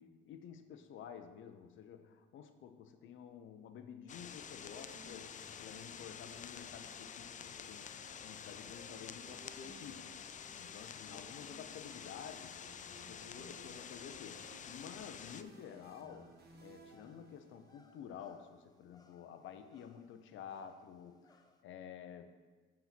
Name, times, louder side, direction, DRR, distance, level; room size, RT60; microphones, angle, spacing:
voice 1, 0.0-7.9 8.2-10.1 10.5-12.6 13.1-22.4, left 8 dB, 75° left, 8 dB, 0.7 m, -51 dB
sound 1, 4.1-15.4, left 8 dB, 40° left, 0.4 m, -49 dB
sound 2, 4.8-17.8, right 2 dB, 55° right, 1.3 m, -59 dB
sound 3, 13.7-21.6, left 2 dB, 20° left, 0.7 m, -69 dB
7.6 x 4.3 x 5.9 m, 1.3 s
cardioid pair, 90°, 20 cm